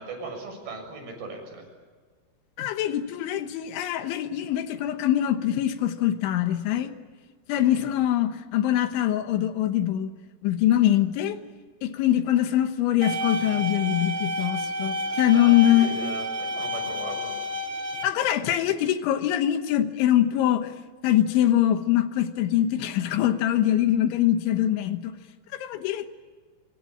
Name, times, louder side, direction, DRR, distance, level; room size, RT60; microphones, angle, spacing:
voice 1, 0.0-1.7 7.6-7.9 15.3-17.3, right 3 dB, 50° right, 3 dB, 8.6 m, -38 dB
voice 2, 2.6-6.9 7.5-10.1 10.4-11.4 11.8-15.9 18.0-20.8 21.0-25.1 25.5-26.1, left 12 dB, 75° left, 9 dB, 3.5 m, -23 dB
sound 1, 13.0-18.0, equal, 25° right, 1.6 m, -30 dB
26.0 x 24.5 x 8.9 m, 1.5 s
omnidirectional pair, 5.6 m